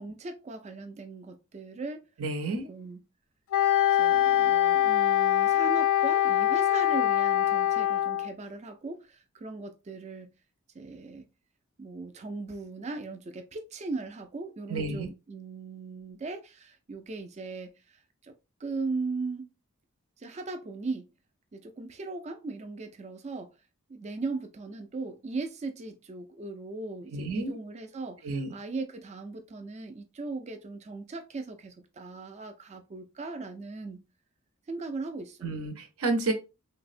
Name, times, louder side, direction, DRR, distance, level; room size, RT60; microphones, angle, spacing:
voice 1, 0.0-2.1 2.5-3.0 4.0-10.3 10.7-11.3 11.8-17.7 18.2-18.3 18.6-19.5 20.2-21.1 21.5-23.5 23.9-34.0 34.7-35.5, right 3 dB, 30° right, 0.4 m, -38 dB
voice 2, 2.2-2.7 14.7-15.1 27.1-27.6 28.2-28.5 35.4-36.3, right 2 dB, 75° right, 0.7 m, -30 dB
Wind instrument woodwind instrument, 3.5-8.3, left 12 dB, 65° left, 0.3 m, -23 dB
3.3 x 2.0 x 2.5 m
head